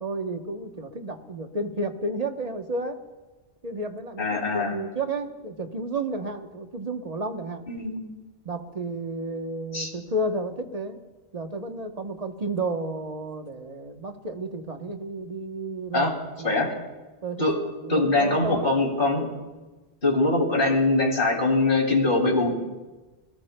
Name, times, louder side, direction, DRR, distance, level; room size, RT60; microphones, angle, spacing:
voice 1, 0.0-3.0 3.6-4.3 4.5-7.6 8.4-11.0 11.3-16.1 16.4-16.6 17.2-17.5 17.8-18.7, right 2 dB, 35° right, 5 dB, 1.0 m, -31 dB
voice 2, 4.2-4.7 7.7-8.0 9.7-9.9 15.9-16.1 16.4-16.7 17.4-17.6 17.9-19.3 20.0-22.5, left 2 dB, 50° left, 0 dB, 2.8 m, -22 dB
26.0 x 19.5 x 2.2 m, 1.2 s
omnidirectional pair, 1.1 m